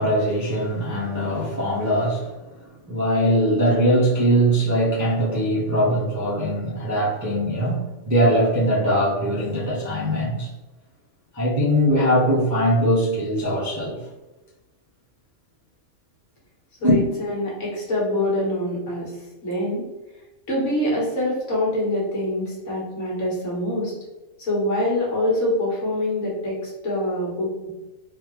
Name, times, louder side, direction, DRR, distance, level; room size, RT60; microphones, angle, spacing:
voice 1, 0.0-2.5 2.9-10.5 11.3-14.0 16.8-17.0, equal, 15° right, -8 dB, 0.6 m, -21 dB
voice 2, 16.8-19.1 19.4-19.8 20.5-23.9 24.4-27.7, left 1 dB, 60° left, -5 dB, 1.5 m, -25 dB
3.7 x 2.5 x 3.0 m, 1.1 s
omnidirectional pair, 1.4 m